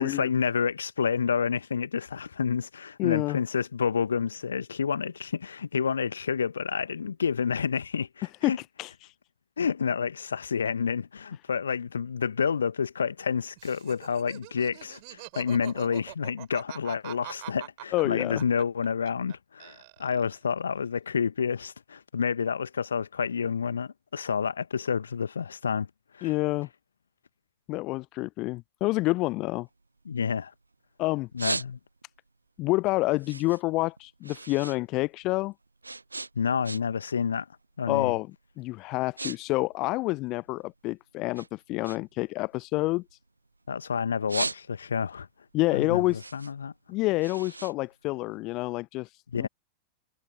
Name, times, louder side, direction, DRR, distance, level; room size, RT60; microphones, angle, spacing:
voice 1, 0.0-8.6 9.6-25.9 26.1-26.3 30.0-30.5 31.3-31.8 36.3-37.5 37.8-38.1 43.7-45.3 45.7-46.7 49.3-49.5, left 6 dB, 70° left, 1.4 m, -29 dB
voice 2, 3.0-3.4 8.4-8.5 8.8-9.1 17.9-18.4 26.2-26.7 27.7-29.7 31.0-31.3 32.6-35.5 37.9-38.3 38.6-43.0 45.5-46.2 46.9-49.1 49.4-49.5, left 21 dB, 40° left, 0.6 m, -28 dB
Laughter, 13.6-19.3 19.6-20.4, right 34 dB, 45° right, 5.3 m, -44 dB
sound 1, 29.6-30.8 31.1-32.2 32.6-34.8 35.1-37.1 37.4-37.8 38.4-38.5 38.8-39.4 39.6-40.9 41.3-43.7 44.1-45.1 45.5-48.6, right 3 dB, 80° right, 1.2 m, -38 dB
figure-of-eight pair, 90°, 0 cm